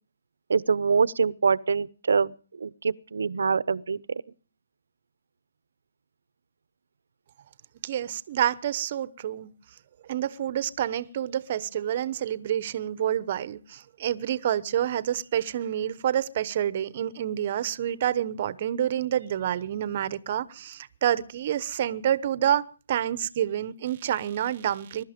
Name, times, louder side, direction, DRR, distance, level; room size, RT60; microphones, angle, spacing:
voice 1, 0.5-4.2, right 5 dB, 70° right, 0.8 m, -25 dB
voice 2, 7.8-9.5 10.1-25.0, right 10 dB, 35° right, 0.9 m, -28 dB
22.5 x 12.0 x 5.2 m
hypercardioid pair, 165°, 0 cm